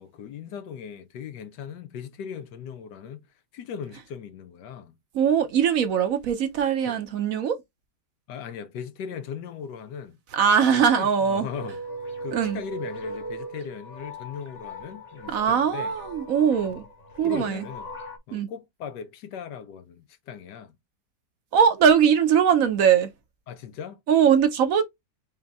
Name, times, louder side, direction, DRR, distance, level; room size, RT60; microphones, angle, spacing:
voice 1, 0.0-3.3 3.5-5.0 6.9-7.0 8.3-10.2 10.7-11.8 12.2-15.9 16.6-16.8 17.2-17.9 18.3-20.7 23.5-24.0, left 7 dB, 85° left, 1.4 m, -38 dB
voice 2, 5.1-7.6 10.3-11.5 12.3-12.6 15.3-16.8 17.2-17.7 18.3-18.5 21.5-23.1 24.1-24.8, right 7 dB, 65° right, 1.0 m, -21 dB
sound 1, 11.5-18.2, right 1 dB, 30° left, 1.0 m, -39 dB
5.3 x 2.9 x 3.4 m
omnidirectional pair, 1.8 m